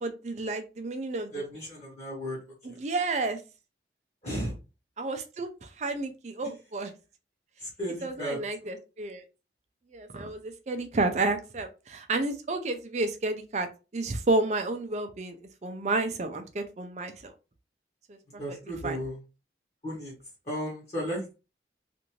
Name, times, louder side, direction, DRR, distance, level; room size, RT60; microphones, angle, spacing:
voice 1, 0.0-1.5 2.6-3.4 5.0-6.9 8.0-9.2 9.9-13.7 13.9-15.4 15.6-17.3 18.1-19.0, right 2 dB, 40° right, 7 dB, 0.5 m, -31 dB
voice 2, 1.3-2.4 2.7-2.8 4.2-4.5 7.6-8.7 18.3-19.2 19.8-20.1 20.5-21.3, equal, 35° left, -4 dB, 1.1 m, -35 dB
2.5 x 2.5 x 3.0 m, 0.30 s
head